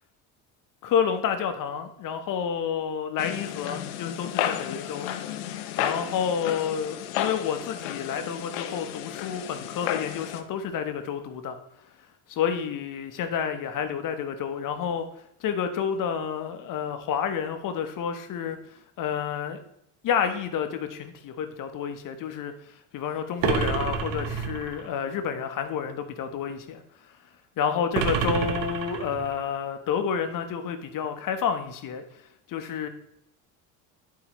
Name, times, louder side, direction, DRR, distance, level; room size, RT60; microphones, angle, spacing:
voice 1, 0.8-5.1 5.8-11.6 12.3-15.0 15.4-18.6 19.0-19.6 20.0-22.5 22.9-26.8 27.6-32.0 32.5-32.9, left 7 dB, 55° left, 8 dB, 1.0 m, -29 dB
sound 1, 3.2-10.4, left 11 dB, 90° left, 0.7 m, -33 dB
sound 2, 23.4-24.9 27.9-29.5, right 7 dB, 85° right, 1.0 m, -28 dB
10.5 x 4.7 x 3.0 m, 0.76 s
supercardioid pair, 100°, 39 cm